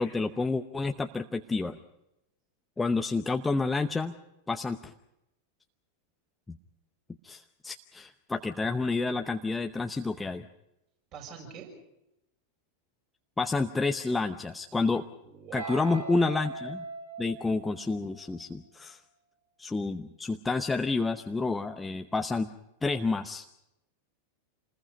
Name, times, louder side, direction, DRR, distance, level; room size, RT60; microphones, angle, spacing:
voice 1, 0.0-1.8 2.8-4.2 4.5-4.9 6.5-6.6 7.2-10.5 13.4-15.0 15.5-16.8 17.2-19.0 19.6-22.5 22.8-23.5, left 3 dB, 10° left, 7 dB, 0.8 m, -29 dB
voice 2, 11.1-11.7 15.0-16.1, right 6 dB, 35° right, 2 dB, 6.4 m, -43 dB
Guitar, 15.6-18.4, right 2 dB, 80° right, 2.5 m, -41 dB
28.0 x 20.5 x 5.2 m, 0.88 s
figure-of-eight pair, 90°, 0 cm